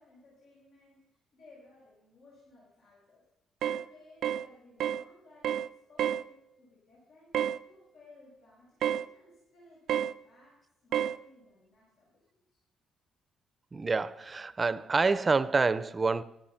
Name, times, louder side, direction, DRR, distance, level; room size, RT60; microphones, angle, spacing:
voice 1, 0.0-3.2 3.6-7.3 7.6-12.6, left 2 dB, 80° left, 6.2 m, -59 dB
sound 1, 3.6-3.9 4.2-4.5 4.8-5.0 5.4-5.7 6.0-6.2 7.3-7.6 8.8-9.1 9.9-10.1 10.9-11.2, right 10 dB, 75° right, 0.4 m, -29 dB
voice 2, 13.7-16.2, right 4 dB, 30° right, 0.6 m, -27 dB
15.5 x 13.0 x 5.8 m
cardioid pair, 90°, 0 cm